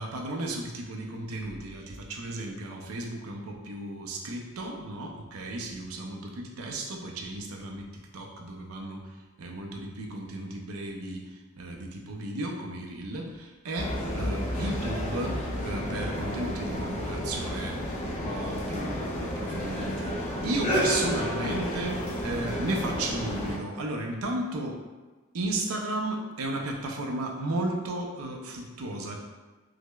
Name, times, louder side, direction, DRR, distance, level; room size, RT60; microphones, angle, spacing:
voice 1, 0.0-20.2 20.4-24.8 25.3-29.2, right 2 dB, 80° right, 1 dB, 0.5 m, -34 dB
sound 1, 13.8-23.6, equal, 30° left, 0.5 m, -31 dB
4.8 x 2.0 x 2.2 m, 1.3 s
head